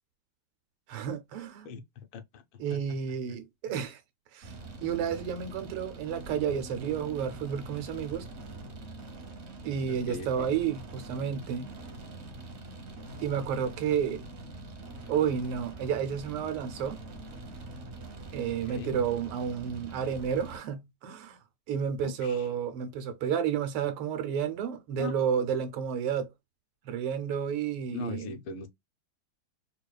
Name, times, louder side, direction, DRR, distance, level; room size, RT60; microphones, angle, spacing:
voice 1, 0.9-1.7 2.6-4.0 4.3-4.5 4.8-8.3 9.6-11.8 13.2-14.2 15.1-17.0 18.3-21.4 21.7-26.3 26.8-28.4, right 8 dB, 85° right, 1.6 m, -31 dB
voice 2, 1.6-2.4 2.7-2.8 9.9-10.5 18.7-19.0 22.0-22.5 25.0-25.1 27.9-28.7, left 4 dB, 75° left, 1.5 m, -40 dB
sound 1, 4.4-20.6, right 2 dB, 55° right, 0.7 m, -44 dB
4.8 x 2.3 x 2.2 m
omnidirectional pair, 2.4 m